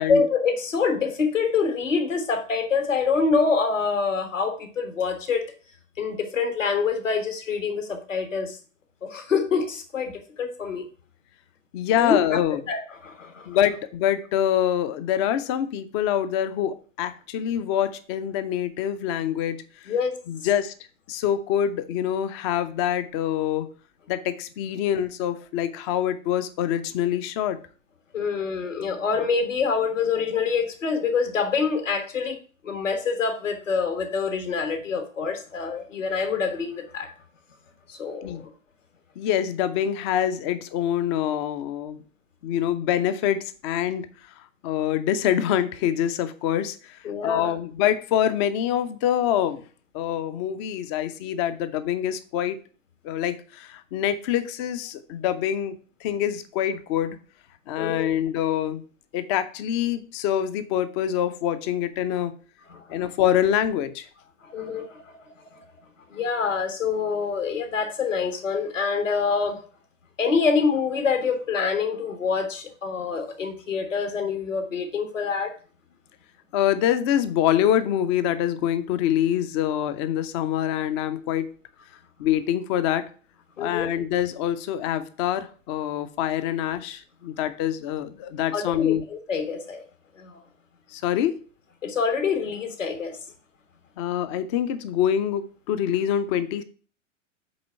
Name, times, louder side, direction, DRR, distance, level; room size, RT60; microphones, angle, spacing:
voice 1, 0.0-5.4 6.0-8.6 9.0-10.8 12.0-12.4 12.7-13.5 19.9-20.2 28.1-32.4 32.6-37.1 37.9-38.4 47.0-47.5 57.8-58.1 62.7-63.0 64.4-65.6 66.1-69.6 70.2-75.5 83.6-83.9 88.5-89.8 90.2-90.4 91.8-93.2, left 5 dB, 70° left, 7 dB, 1.5 m, -26 dB
voice 2, 11.7-12.6 13.5-19.9 20.3-20.7 21.1-23.7 24.1-27.6 38.2-38.5 39.2-42.0 42.4-44.3 44.6-49.6 49.9-52.6 53.0-57.2 57.7-58.8 59.1-62.3 62.9-64.1 76.5-81.5 82.2-83.1 83.6-89.0 90.9-91.4 94.0-96.6, left 10 dB, 25° left, 12 dB, 0.4 m, -25 dB
7.8 x 3.6 x 5.6 m, 0.41 s
figure-of-eight pair, 100°, 39 cm